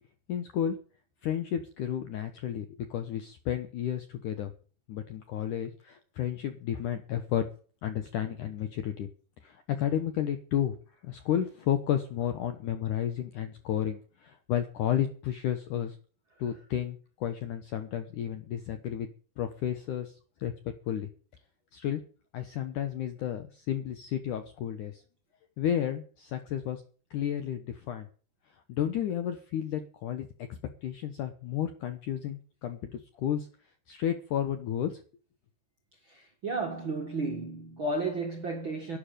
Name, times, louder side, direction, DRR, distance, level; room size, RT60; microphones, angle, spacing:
voice 1, 0.3-0.8 1.2-4.5 4.9-7.5 7.8-9.1 9.4-10.8 11.0-16.0 16.4-19.1 19.4-20.5 20.9-21.1 21.7-22.0 22.3-25.0 25.6-26.8 27.1-28.1 28.7-33.5 33.9-35.0, left 10 dB, 75° left, 1.9 m, -32 dB
voice 2, 36.1-39.0, right 3 dB, 50° right, 1.5 m, -33 dB
12.0 x 9.5 x 9.1 m
omnidirectional pair, 5.0 m